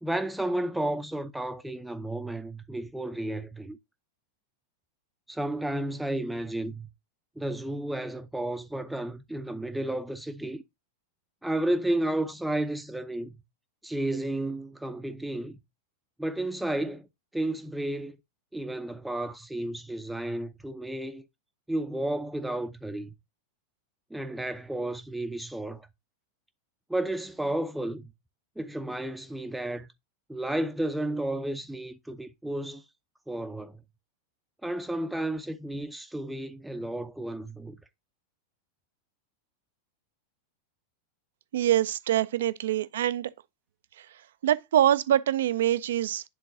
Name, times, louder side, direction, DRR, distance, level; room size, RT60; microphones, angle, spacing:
voice 1, 0.0-3.8 5.3-6.9 7.4-10.6 11.4-13.4 13.8-15.6 16.2-17.1 17.3-18.2 18.5-21.3 21.7-23.1 24.1-25.9 26.9-28.1 28.6-29.9 30.3-32.8 33.3-33.8 34.6-37.8, right 1 dB, 5° right, 0.5 m, -32 dB
voice 2, 41.5-43.3 44.4-46.2, right 11 dB, 60° right, 0.4 m, -24 dB
10.0 x 3.8 x 2.6 m
figure-of-eight pair, 90°, 0 cm